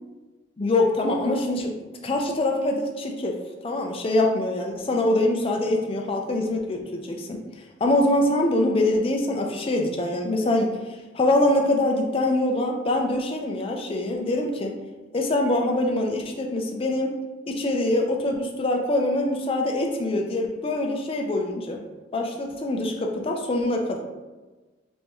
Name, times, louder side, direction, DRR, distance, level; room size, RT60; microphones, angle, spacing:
voice 1, 0.6-1.7 2.0-3.4 3.6-7.4 7.8-10.7 11.1-14.7 15.1-17.1 17.5-21.8 22.1-24.0, left 1 dB, 30° left, 2 dB, 0.4 m, -24 dB
3.6 x 2.6 x 2.9 m, 1.2 s
head